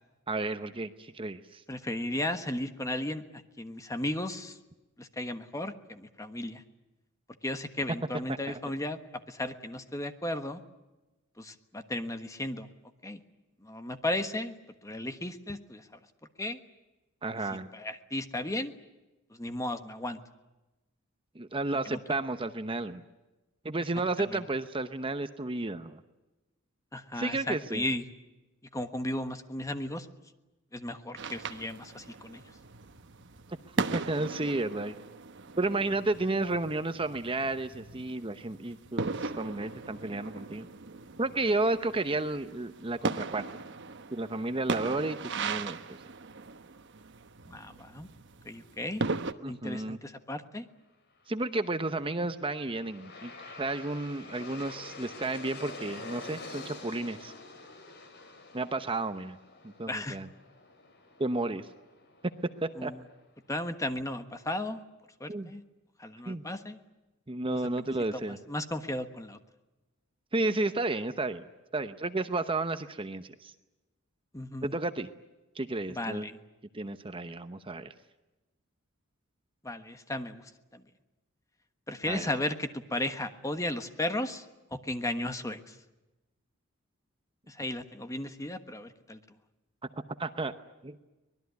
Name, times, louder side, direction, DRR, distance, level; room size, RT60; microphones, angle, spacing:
voice 1, 0.3-1.6 8.5-8.6 17.2-17.7 21.3-23.0 23.6-26.0 27.2-27.8 33.8-35.0 35.6-39.1 39.4-40.7 41.2-43.6 44.1-45.8 49.4-50.0 51.3-53.3 53.6-57.3 58.5-59.4 59.6-60.3 61.2-61.7 62.2-62.9 65.3-65.5 66.3-66.4 67.3-68.4 70.3-71.4 71.7-73.5 74.6-75.1 75.5-76.3 76.7-77.9 82.1-82.3 90.2-90.5 90.8-91.0, right 2 dB, 25° right, 10 dB, 0.9 m, -32 dB
voice 2, 1.7-3.2 3.6-4.6 5.0-6.6 7.4-9.0 9.3-10.6 11.4-12.7 13.0-13.2 13.6-14.5 14.8-15.9 16.4-16.6 17.7-18.7 19.3-20.2 21.8-22.0 24.3-24.4 26.9-28.0 28.7-30.1 30.7-32.4 47.5-48.1 48.4-49.0 49.5-50.7 59.9-60.2 62.8-63.0 63.5-64.8 65.2-65.6 66.0-66.8 67.5-67.6 68.5-69.4 74.3-74.8 75.9-76.3 79.6-80.8 81.9-84.4 84.7-85.7 87.5-89.2, left 1 dB, 15° left, 9 dB, 1.3 m, -35 dB
sound 1, 31.2-49.3, right 4 dB, 60° right, 1.1 m, -38 dB
Aircraft, 52.0-63.1, left 3 dB, 55° left, 3.8 m, -47 dB
24.5 x 20.0 x 9.5 m, 1.1 s
head